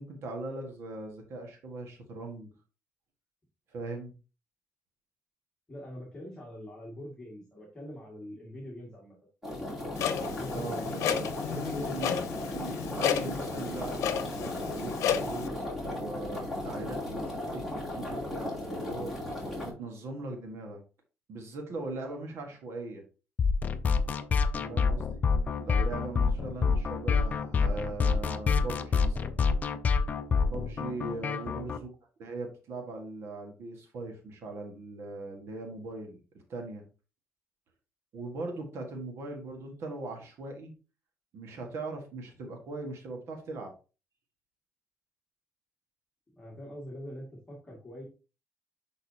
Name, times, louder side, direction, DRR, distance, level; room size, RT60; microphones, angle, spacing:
voice 1, 0.0-2.5 3.7-4.1 10.3-11.3 11.9-12.3 12.5-20.8 21.3-23.0 24.7-25.2 25.6-29.4 30.4-31.9 32.2-36.8 38.1-40.7 41.3-43.7, right 2 dB, 60° right, 3 dB, 1.5 m, -40 dB
voice 2, 5.7-9.1 10.2-12.2 24.5-24.8 31.2-31.7 46.3-48.1, equal, 15° left, -4 dB, 2.0 m, -43 dB
sound 1, 9.4-19.7, left 1 dB, 5° right, 3.0 m, -36 dB
Clock, 10.0-15.5, left 9 dB, 80° left, 0.8 m, -33 dB
sound 2, 23.4-31.8, left 5 dB, 30° left, 0.5 m, -27 dB
10.5 x 3.9 x 2.8 m, 0.34 s
cardioid pair, 160°, 5 cm